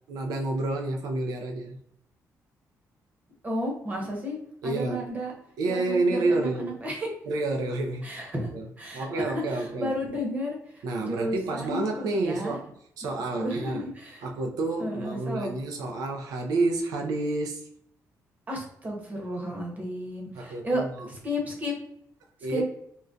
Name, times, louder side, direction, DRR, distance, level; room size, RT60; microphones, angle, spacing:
voice 1, 0.1-1.8 4.6-5.1 5.6-6.8 7.3-8.1 8.5-8.7 8.9-9.9 10.8-13.9 14.2-17.7 20.4-21.1 22.4-22.6, right 2 dB, 85° right, 0.4 m, -29 dB
voice 2, 3.4-4.4 4.6-5.3 5.7-7.1 8.0-8.5 8.8-12.6 13.3-14.2 14.8-15.5 18.5-21.7 22.5-22.6, equal, 25° right, 0.9 m, -33 dB
3.6 x 2.2 x 2.5 m
cardioid pair, 145°, 6 cm